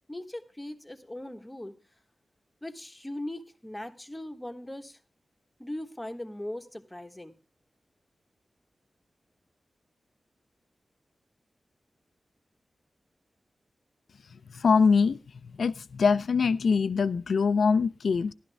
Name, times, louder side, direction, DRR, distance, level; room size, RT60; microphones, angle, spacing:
voice 1, 0.1-1.8 2.6-5.0 5.6-7.3, left 1 dB, 10° left, 1.3 m, -39 dB
voice 2, 14.5-15.2 15.6-18.3, left 5 dB, 80° left, 0.6 m, -23 dB
15.5 x 12.0 x 3.4 m
wide cardioid pair, 120°, 0 cm